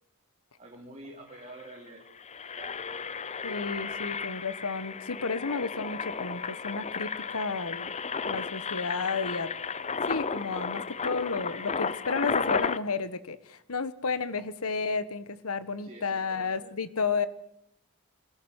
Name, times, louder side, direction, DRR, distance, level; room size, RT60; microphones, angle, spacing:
voice 1, 0.6-2.0 2.6-2.8 15.8-16.7, right 2 dB, 30° right, -2 dB, 3.7 m, -47 dB
Engine, 1.0-1.1 1.4-1.6 2.1-12.8, left 5 dB, 30° left, 0.7 m, -33 dB
voice 2, 3.4-7.9 8.2-9.5 10.1-17.3, left 4 dB, 80° left, 14 dB, 1.3 m, -32 dB
24.5 x 14.0 x 8.1 m, 0.74 s
head